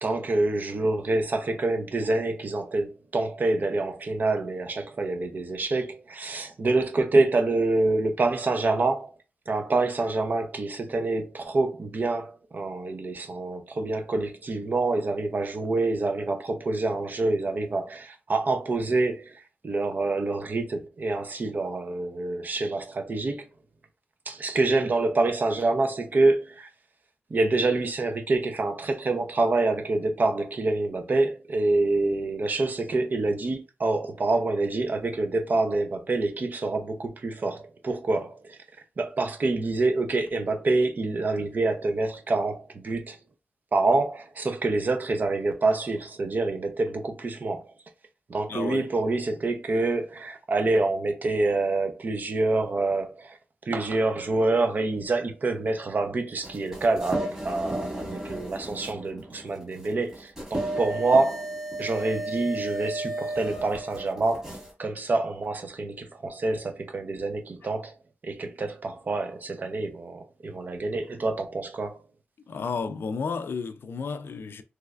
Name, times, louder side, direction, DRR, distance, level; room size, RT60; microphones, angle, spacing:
voice 1, 0.0-9.1 9.5-23.5 24.3-26.7 27.3-38.6 39.0-43.2 43.7-47.6 48.3-53.4 53.7-61.5 61.8-64.5 64.8-67.9 68.2-72.0, right 2 dB, 50° right, 0.6 m, -26 dB
voice 2, 48.5-48.9 72.5-74.6, left 5 dB, 70° left, 0.4 m, -32 dB
sound 1, 56.4-64.7, right 1 dB, 15° right, 1.9 m, -34 dB
3.3 x 3.1 x 2.4 m
wide cardioid pair, 120°, 4 cm